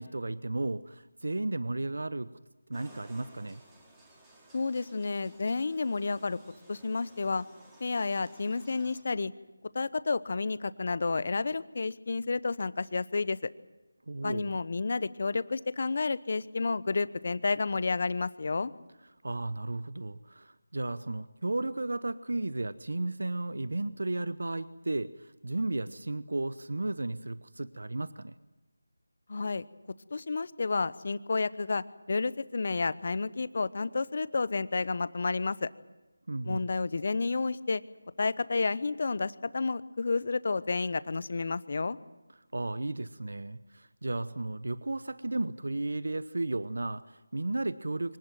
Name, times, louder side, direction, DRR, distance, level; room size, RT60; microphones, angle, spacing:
voice 1, 0.0-2.4 2.7-3.6 14.1-14.6 19.2-28.3 36.3-36.7 42.5-48.2, right 2 dB, 75° right, 15 dB, 0.9 m, -34 dB
sound 1, 2.7-9.0, right 1 dB, 10° right, 4.3 m, -57 dB
voice 2, 4.5-6.4 6.7-7.4 7.8-9.3 9.7-13.5 14.2-18.7 29.3-29.6 30.1-35.7 36.4-37.8 38.2-42.0, left 3 dB, 50° left, 17 dB, 1.0 m, -30 dB
24.5 x 18.0 x 9.2 m, 1.1 s
figure-of-eight pair, 165°, 0 cm